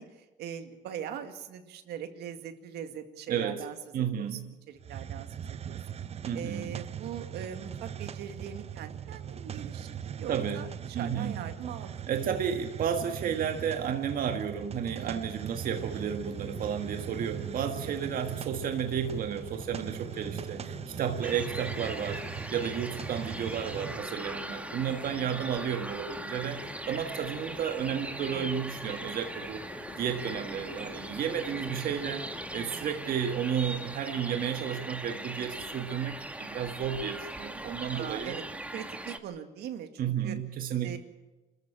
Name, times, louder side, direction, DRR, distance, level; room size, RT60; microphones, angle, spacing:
voice 1, 0.0-5.8 6.3-12.2 15.0-15.3 17.8-17.9 20.0-20.5 24.8-25.1 28.3-28.5 32.5-32.9 37.6-38.4 38.7-40.4 40.8-41.0, right 9 dB, 75° right, 7 dB, 2.1 m, -42 dB
voice 2, 3.3-3.7 3.9-4.5 6.3-6.7 10.3-10.6 10.9-11.4 12.1-22.2 22.5-29.6 30.0-38.4 40.0-41.0, right 8 dB, 55° right, 6 dB, 1.7 m, -32 dB
Hiss, 4.8-24.1, right 8 dB, 40° right, 0.8 m, -40 dB
sound 1, 15.2-32.7, left 6 dB, 30° left, 1.2 m, -49 dB
sound 2, 21.2-39.2, right 1 dB, 10° right, 1.6 m, -40 dB
26.5 x 14.0 x 8.8 m, 1.1 s
cardioid pair, 110°, 17 cm